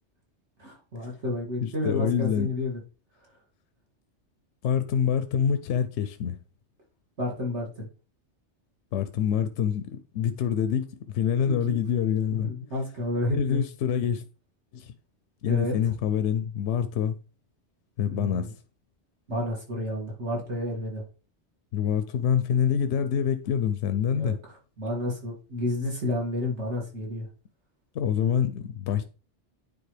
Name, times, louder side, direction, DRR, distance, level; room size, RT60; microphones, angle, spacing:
voice 1, 0.6-2.8 7.2-7.9 11.6-11.8 12.3-13.6 15.5-15.8 18.0-18.5 19.3-21.0 24.1-24.3 24.8-27.3, left 1 dB, 75° right, 2.6 m, -30 dB
voice 2, 1.6-2.5 4.6-6.4 8.9-12.5 13.4-14.2 14.7-14.9 15.4-17.2 18.0-18.5 21.7-24.4 27.9-29.0, left 8 dB, 80° left, 0.9 m, -26 dB
9.4 x 4.1 x 3.3 m
omnidirectional pair, 1.2 m